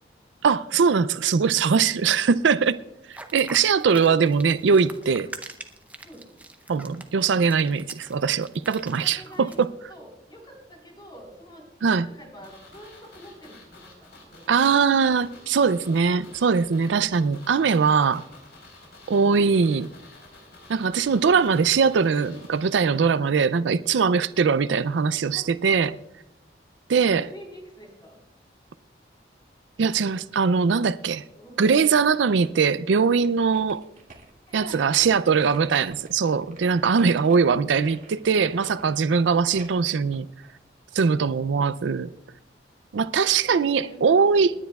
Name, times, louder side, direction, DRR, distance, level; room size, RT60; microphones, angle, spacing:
voice 1, 0.4-2.8 3.1-5.3 6.7-9.7 11.8-12.1 14.5-18.2 19.1-19.9 20.7-26.0 26.9-27.3 29.8-31.2 31.6-33.8 34.5-40.3 40.9-42.1 42.9-44.5, right 5 dB, 85° right, 0.4 m, -21 dB
sound 1, 3.1-9.6, right 2 dB, 10° right, 0.6 m, -43 dB
voice 2, 8.8-9.6 9.9-11.7 12.0-14.6 16.0-16.3 25.3-25.5 26.9-28.2 31.1-31.7 34.5-35.4 43.4-44.5, equal, 25° left, 4.1 m, -46 dB
sound 2, 12.4-23.4 23.6-23.7, left 2 dB, 70° left, 4.1 m, -50 dB
sound 3, 32.3-32.7 33.1-41.2 41.6-41.7, right 3 dB, 45° right, 2.1 m, -50 dB
29.5 x 10.0 x 2.3 m
head